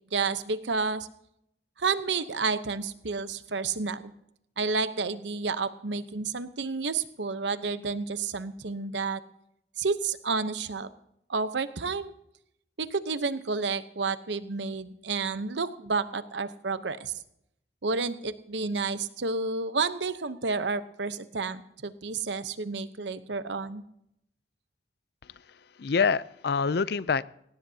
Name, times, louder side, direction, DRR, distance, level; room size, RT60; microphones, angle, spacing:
voice 1, 0.1-1.1 1.8-4.1 4.6-9.2 9.8-10.9 11.3-12.1 12.8-17.1 17.8-23.8, right 4 dB, 80° right, 12 dB, 0.9 m, -30 dB
voice 2, 25.2-27.2, left 5 dB, 60° left, 18 dB, 0.5 m, -27 dB
18.5 x 16.5 x 2.8 m, 0.77 s
head